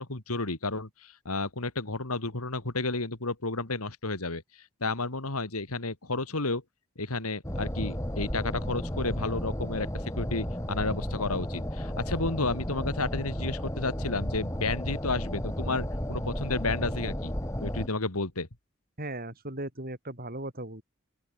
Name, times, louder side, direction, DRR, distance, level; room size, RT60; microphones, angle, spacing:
voice 1, 0.0-4.4 4.8-6.6 7.0-17.3 17.6-18.5, left 3 dB, 90° left, 2.9 m, -32 dB
sound 1, 7.4-17.9, equal, 15° left, 5.2 m, -33 dB
voice 2, 19.0-20.8, right 1 dB, 45° right, 6.4 m, -37 dB
open air
head